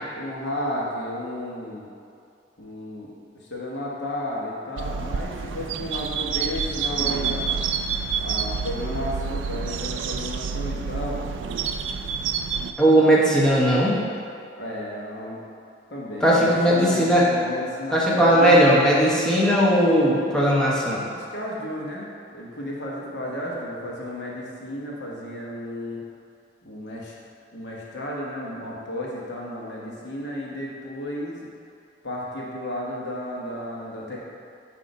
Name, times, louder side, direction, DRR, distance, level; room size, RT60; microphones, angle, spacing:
voice 1, 0.2-1.9 2.6-7.6 8.2-11.3 14.6-15.4 15.9-18.8 21.1-26.0 26.6-27.1 27.5-31.4 32.0-34.2, left 1 dB, 65° left, -4 dB, 1.2 m, -33 dB
sound 1, 4.8-12.7, right 6 dB, 85° right, 0.4 m, -28 dB
voice 2, 12.8-14.0 16.2-17.2 17.9-21.0, right 1 dB, 5° left, -6 dB, 1.0 m, -18 dB
7.9 x 2.8 x 5.2 m, 2.5 s
head